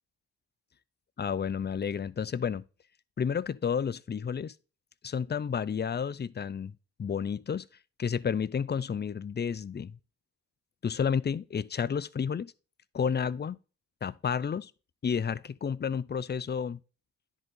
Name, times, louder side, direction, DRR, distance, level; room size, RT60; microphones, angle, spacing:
voice 1, 1.2-2.6 3.2-4.5 5.0-6.7 7.0-7.7 8.0-10.0 10.8-12.5 12.9-13.6 14.0-14.7 15.0-16.8, left 7 dB, 25° left, 0.5 m, -31 dB
10.5 x 4.0 x 3.7 m
supercardioid pair, 50°, 43 cm